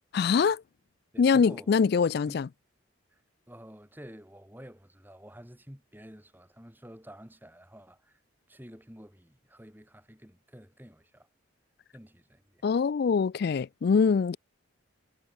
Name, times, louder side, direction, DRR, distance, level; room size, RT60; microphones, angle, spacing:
voice 1, 0.1-0.6 1.2-2.5 12.6-14.4, left 5 dB, 50° left, 0.3 m, -24 dB
voice 2, 1.1-1.7 2.3-2.4 3.1-3.2 3.5-8.2 8.5-11.3 11.9-12.6, equal, 10° right, 3.3 m, -50 dB
head